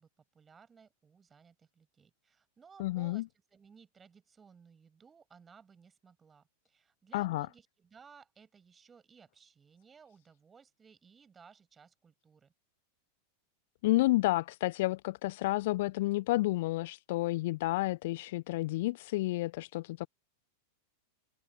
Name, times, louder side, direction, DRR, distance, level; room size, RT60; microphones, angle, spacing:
voice 1, 0.0-12.5, right 6 dB, 20° right, 6.6 m, -59 dB
voice 2, 2.8-3.2 7.1-7.5 13.8-20.1, left 18 dB, 50° left, 0.5 m, -30 dB
figure-of-eight pair, 90°, 0 cm